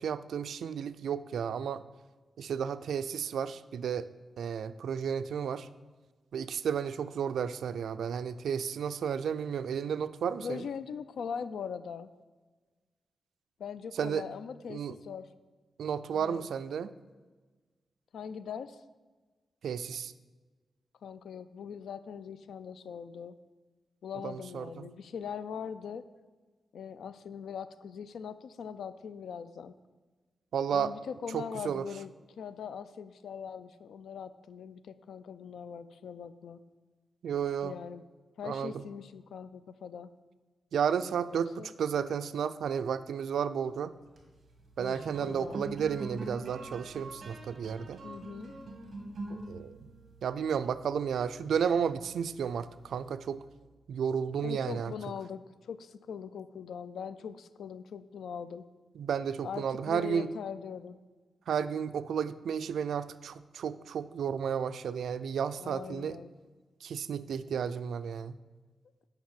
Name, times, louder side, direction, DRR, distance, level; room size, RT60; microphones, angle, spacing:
voice 1, 0.0-1.8 2.4-4.1 4.4-5.7 6.3-10.6 14.0-14.2 14.7-14.9 15.8-16.9 19.6-20.1 24.2-24.9 30.5-30.9 31.3-31.9 37.2-37.8 38.4-38.8 40.7-43.9 44.8-48.0 49.3-49.7 50.2-53.4 53.9-54.9 59.0-60.3 61.5-66.2 66.8-68.4, right 7 dB, 80° right, 14 dB, 0.4 m, -32 dB
voice 2, 10.4-12.1 13.6-15.3 16.1-16.5 18.1-18.8 21.0-23.4 24.0-26.0 26.7-29.7 30.7-36.6 37.6-38.1 38.4-40.1 41.3-41.7 44.8-45.8 48.0-48.5 54.4-58.7 59.4-61.0 65.6-66.3, left 7 dB, 80° left, 13 dB, 0.4 m, -41 dB
sound 1, 43.9-53.5, right 2 dB, 50° right, 2.1 m, -46 dB
8.9 x 5.9 x 7.3 m, 1.3 s
wide cardioid pair, 115°, 0 cm